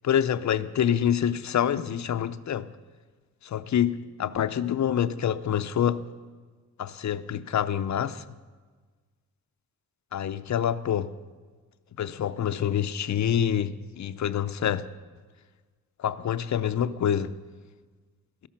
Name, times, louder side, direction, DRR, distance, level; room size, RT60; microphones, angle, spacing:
voice 1, 0.0-2.7 3.4-6.0 6.8-8.2 10.1-11.1 12.0-14.8 16.0-17.3, left 9 dB, 55° left, 0.6 m, -26 dB
17.0 x 13.5 x 5.9 m
wide cardioid pair, 175°, 35 cm